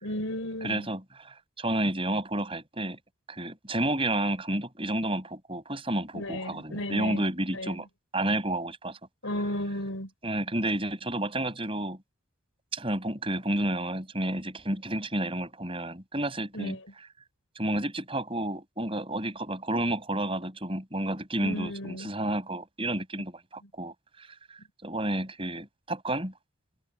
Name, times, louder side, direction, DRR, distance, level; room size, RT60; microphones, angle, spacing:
voice 1, 0.0-0.9 6.1-7.2 7.5-7.7 9.2-10.1 16.5-16.8 21.4-22.1, left 1 dB, 85° left, 4.5 m, -34 dB
voice 2, 0.6-3.0 3.3-7.9 8.1-9.0 10.2-12.0 12.7-16.8 17.6-26.3, right 1 dB, 25° right, 5.9 m, -31 dB
head